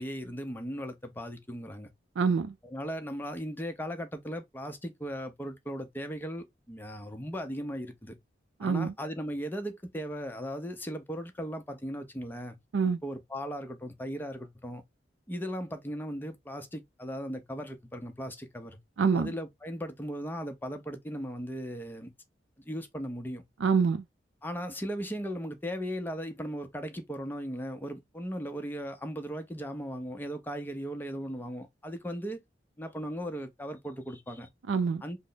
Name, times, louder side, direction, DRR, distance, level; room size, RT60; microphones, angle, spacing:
voice 1, 0.0-1.9 2.6-8.1 8.6-12.6 13.0-14.8 15.3-18.8 19.1-22.1 22.7-23.4 24.4-32.4 32.8-34.5 35.0-35.2, equal, 10° left, 0.6 m, -37 dB
voice 2, 2.2-2.5 8.6-8.9 12.7-13.0 19.0-19.3 23.6-24.0 34.7-35.0, right 5 dB, 90° right, 0.4 m, -26 dB
3.3 x 2.0 x 3.8 m
head